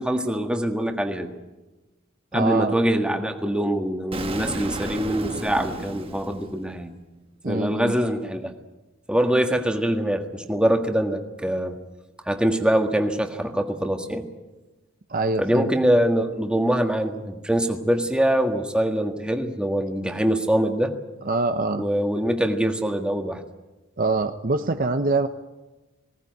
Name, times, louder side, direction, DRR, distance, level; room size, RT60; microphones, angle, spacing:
voice 1, 0.0-1.3 2.3-6.9 7.5-8.5 9.1-11.8 12.2-14.3 15.4-20.9 21.8-23.4, right 1 dB, 5° right, 4 dB, 1.7 m, -23 dB
voice 2, 2.3-2.7 7.4-8.0 15.1-15.7 21.3-21.8 24.0-25.3, right 3 dB, 45° right, 8 dB, 0.8 m, -24 dB
Explosion, 4.1-7.0, right 2 dB, 30° right, 1.4 m, -33 dB
20.0 x 18.0 x 9.4 m, 1.1 s
head